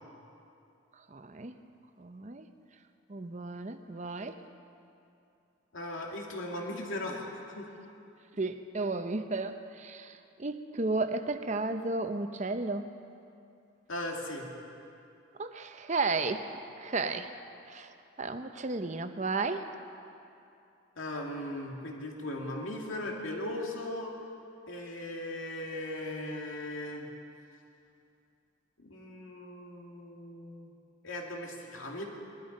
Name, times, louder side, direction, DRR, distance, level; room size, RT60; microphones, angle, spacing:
voice 1, 1.1-1.6 2.0-2.5 3.1-4.4 8.4-12.9 15.4-16.5 16.8-17.3 17.7-17.9 18.2-19.6, right 3 dB, 35° right, 8 dB, 0.7 m, -33 dB
voice 2, 5.7-7.7 13.9-14.5 21.0-24.1 24.7-27.1 28.8-30.7 31.0-32.0, left 1 dB, 75° left, 0 dB, 2.4 m, -38 dB
20.5 x 13.0 x 5.3 m, 2.7 s
head